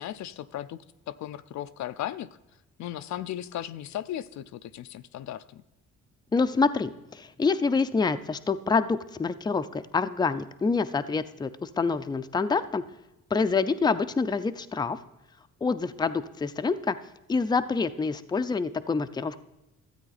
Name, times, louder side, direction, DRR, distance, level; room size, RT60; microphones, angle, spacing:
voice 1, 0.0-2.3 2.8-5.6, left 12 dB, 70° left, 12 dB, 0.5 m, -36 dB
voice 2, 6.3-12.8 13.3-15.0 15.6-17.0 17.3-19.4, left 4 dB, 15° left, 10 dB, 0.5 m, -26 dB
13.0 x 8.4 x 4.0 m, 1.0 s
cardioid pair, 90°, 30 cm